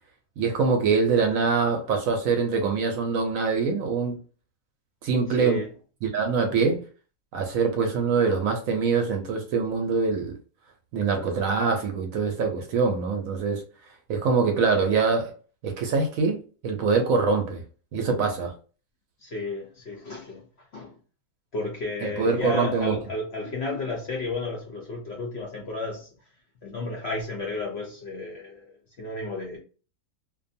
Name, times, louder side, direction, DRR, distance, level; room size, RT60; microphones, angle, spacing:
voice 1, 0.4-4.2 5.0-5.6 6.0-6.8 7.3-10.3 10.9-13.6 14.1-15.3 15.6-17.6 17.9-18.5 22.0-23.0, right 4 dB, 70° right, 0.9 m, -24 dB
voice 2, 19.2-20.4 20.7-20.9 21.5-26.1 26.6-28.7 29.0-29.6, left 2 dB, 60° left, 0.7 m, -32 dB
2.6 x 2.2 x 2.6 m
omnidirectional pair, 1.7 m